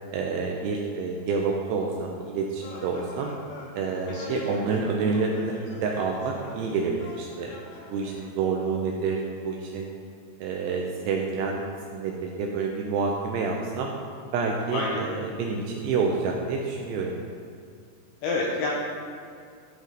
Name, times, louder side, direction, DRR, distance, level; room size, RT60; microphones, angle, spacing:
voice 1, 0.1-3.3 3.7-5.5 5.8-7.5 7.9-9.9 10.4-11.6 11.9-13.9 14.3-17.1, right 4 dB, 80° right, 0 dB, 2.4 m, -28 dB
sound 1, 2.6-8.2, left 2 dB, 70° left, 2.7 m, -43 dB
voice 2, 4.1-4.4 14.7-15.0 18.2-18.7, left 3 dB, 85° left, -2 dB, 2.3 m, -28 dB
12.5 x 5.1 x 3.9 m, 2.3 s
omnidirectional pair, 5.3 m